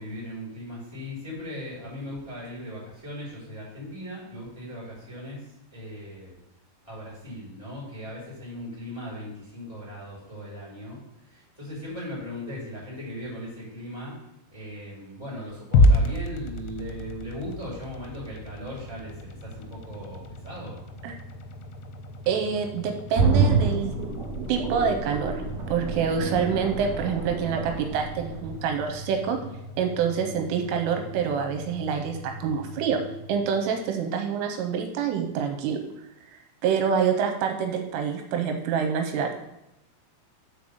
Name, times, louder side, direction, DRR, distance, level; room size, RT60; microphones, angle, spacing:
voice 1, 0.0-6.4 6.8-14.2 14.5-20.8, left 1 dB, 10° left, -6 dB, 2.0 m, -38 dB
sound 1, 15.7-34.0, left 1 dB, 90° left, 3.3 m, -31 dB
voice 2, 22.3-24.0 24.5-25.4 25.7-29.4 29.8-33.0 33.3-35.8 36.3-39.3, right 7 dB, 85° right, 4 dB, 3.2 m, -26 dB
sound 2, 23.1-29.0 29.3-29.4, right 4 dB, 45° right, 2.3 m, -27 dB
6.6 x 5.4 x 6.6 m, 0.87 s
omnidirectional pair, 5.9 m